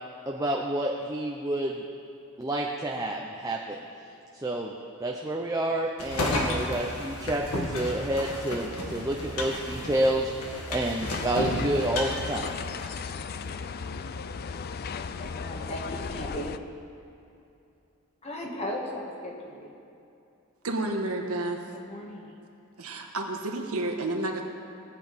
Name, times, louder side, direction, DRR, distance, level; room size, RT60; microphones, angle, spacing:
voice 1, 0.3-1.8 2.4-3.8 4.3-4.7 5.0-12.5, right 1 dB, 15° right, -1 dB, 0.7 m, -29 dB
sound 1, 6.0-13.2, left 1 dB, 85° left, 1.8 m, -33 dB
sound 2, 11.0-16.6, left 5 dB, 45° left, 0.4 m, -36 dB
voice 2, 15.2-16.5 18.2-19.7 21.7-22.4, left 1 dB, 30° left, -1 dB, 1.6 m, -37 dB
voice 3, 20.6-21.6 22.8-24.4, right 2 dB, 75° right, 2 dB, 1.4 m, -30 dB
18.0 x 8.7 x 5.2 m, 2.7 s
head